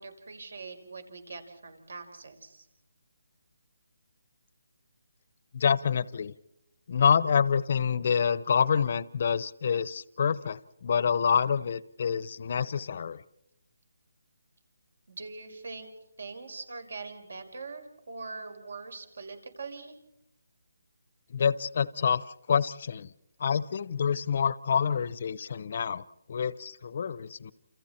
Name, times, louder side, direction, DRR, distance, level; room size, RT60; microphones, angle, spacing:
voice 1, 0.0-2.7 15.1-15.9 16.2-20.0, right 4 dB, 70° right, 7 dB, 5.3 m, -42 dB
voice 2, 5.5-6.3 6.9-13.2 21.3-23.1 23.4-27.5, left 7 dB, 40° left, 18 dB, 0.8 m, -27 dB
30.0 x 28.5 x 4.4 m, 0.83 s
hypercardioid pair, 170°, 0 cm